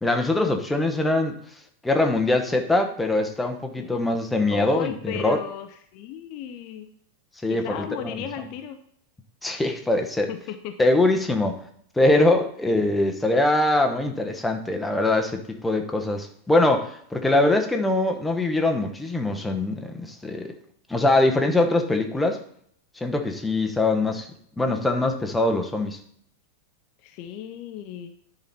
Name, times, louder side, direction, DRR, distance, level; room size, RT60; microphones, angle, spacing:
voice 1, 0.0-1.4 1.8-5.4 7.4-8.1 9.4-10.3 10.8-11.6 12.0-20.5 20.9-22.4 23.0-24.3 24.6-26.0, left 2 dB, 5° left, 4 dB, 1.1 m, -22 dB
voice 2, 4.5-6.9 7.5-8.8 10.3-10.9 24.7-24.8 27.0-28.1, left 9 dB, 40° left, 7 dB, 0.6 m, -35 dB
10.5 x 5.3 x 4.2 m, 0.63 s
figure-of-eight pair, 90°, 0 cm